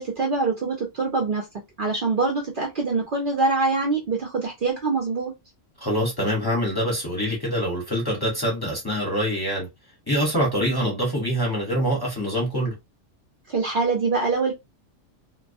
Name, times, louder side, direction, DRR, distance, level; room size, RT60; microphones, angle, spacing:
voice 1, 0.0-1.5 1.8-5.3 13.5-14.5, right 3 dB, 55° right, 0.6 m, -24 dB
voice 2, 5.8-9.7 10.1-12.8, equal, 20° left, 0.7 m, -25 dB
2.3 x 2.1 x 2.5 m
omnidirectional pair, 1.3 m